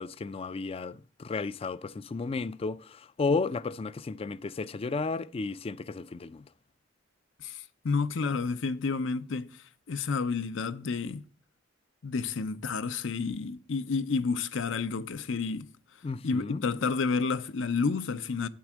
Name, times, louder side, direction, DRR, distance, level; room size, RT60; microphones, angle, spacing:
voice 1, 0.0-6.4 16.0-16.6, left 4 dB, 30° left, 0.3 m, -33 dB
voice 2, 7.4-9.5 9.9-11.2 12.0-15.7 16.2-18.5, left 4 dB, 70° left, 0.6 m, -30 dB
8.6 x 4.6 x 7.2 m
head